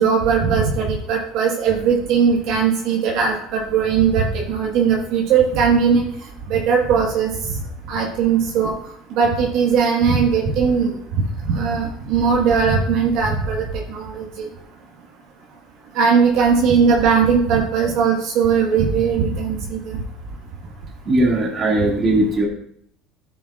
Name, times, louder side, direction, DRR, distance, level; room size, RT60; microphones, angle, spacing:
voice 1, 0.0-6.0 6.5-7.3 7.9-8.7 9.1-10.9 11.4-13.6 13.9-14.5 15.9-20.0, right 6 dB, 60° right, -1 dB, 1.5 m, -18 dB
voice 2, 21.0-22.5, right 1 dB, 30° right, -1 dB, 2.1 m, -18 dB
13.5 x 7.0 x 2.4 m, 0.68 s
cardioid pair, 140°, 0 cm